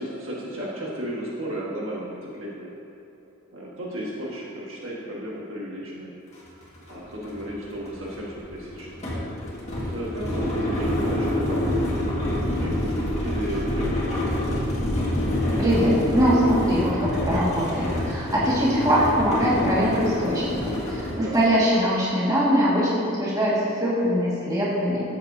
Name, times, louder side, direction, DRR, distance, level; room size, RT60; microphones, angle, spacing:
voice 1, 0.0-2.7 3.5-6.1 6.9-9.0 9.7-11.9 12.4-14.5 21.0-21.4, equal, 65° right, -5 dB, 1.7 m, -34 dB
sound 1, 6.3-6.4 6.8-21.5, left 1 dB, 30° left, 1.8 m, -27 dB
voice 2, 15.6-25.0, equal, 15° right, -8 dB, 1.9 m, -22 dB
13.0 x 7.8 x 2.7 m, 2.9 s
head